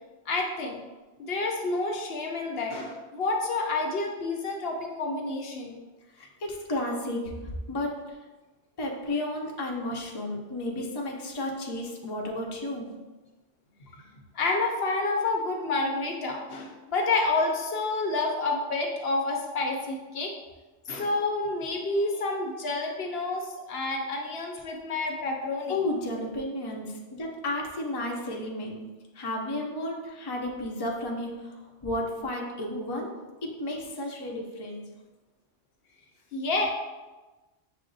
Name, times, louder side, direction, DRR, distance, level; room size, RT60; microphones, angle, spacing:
voice 1, 0.3-0.8 1.2-5.8 14.0-20.3 20.9-25.8 36.3-36.7, left 3 dB, 60° left, 1 dB, 0.8 m, -29 dB
voice 2, 6.1-8.2 8.8-12.9 25.7-28.8 29.1-33.1 33.4-34.9, left 1 dB, 30° left, -1 dB, 0.5 m, -33 dB
6.3 x 2.1 x 3.9 m, 1.2 s
omnidirectional pair, 1.2 m